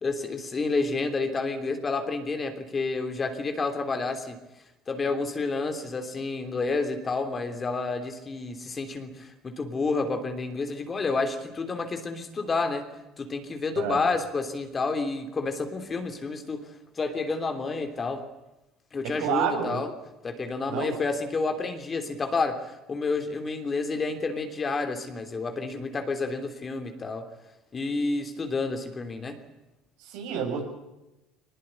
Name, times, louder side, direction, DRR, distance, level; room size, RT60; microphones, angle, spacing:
voice 1, 0.0-4.4 4.9-12.9 13.2-18.2 18.9-19.9 20.2-27.3 27.7-29.4, left 3 dB, 25° left, 6 dB, 3.2 m, -30 dB
voice 2, 19.0-19.8 20.7-20.9 30.1-30.6, right 7 dB, 80° right, 3 dB, 7.3 m, -29 dB
22.0 x 20.0 x 10.0 m, 0.96 s
cardioid pair, 115°, 0 cm